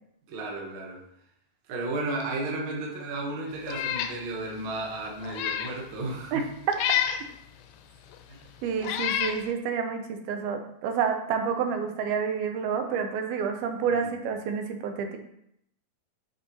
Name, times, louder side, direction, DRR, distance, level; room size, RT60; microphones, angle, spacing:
voice 1, 0.3-1.0 1.7-6.5 8.3-8.4 14.0-14.2, right 2 dB, 65° right, -2 dB, 1.2 m, -33 dB
Meow, 3.7-4.2 4.6-4.7 5.2-5.8 6.7-7.3 8.1-8.2 8.8-9.4, left 10 dB, 85° left, 2.6 m, -28 dB
voice 2, 8.6-15.2, right 6 dB, 85° right, 5 dB, 2.6 m, -29 dB
8.5 x 5.5 x 3.1 m, 0.74 s
omnidirectional pair, 4.4 m